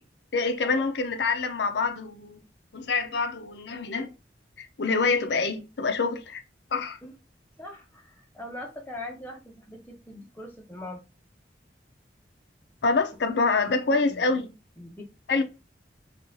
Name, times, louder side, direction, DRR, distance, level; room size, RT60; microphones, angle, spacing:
voice 1, 0.3-2.4 2.7-4.1 4.6-6.4 6.7-7.0 12.8-14.5 15.3-15.4, left 4 dB, 80° left, 0.5 m, -26 dB
voice 2, 7.6-11.0 13.4-14.2 14.8-15.1 15.3-15.4, left 1 dB, 10° left, 0.7 m, -41 dB
3.8 x 2.4 x 2.7 m
head